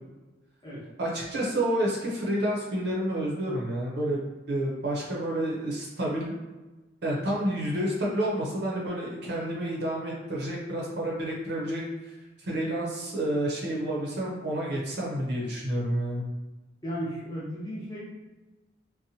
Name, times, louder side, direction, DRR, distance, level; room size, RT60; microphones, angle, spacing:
voice 1, 1.0-6.4 7.0-16.2, right 1 dB, 55° right, -3 dB, 0.6 m, -29 dB
voice 2, 16.8-18.0, equal, 20° left, -7 dB, 0.8 m, -35 dB
2.7 x 2.1 x 2.8 m, 1.2 s
head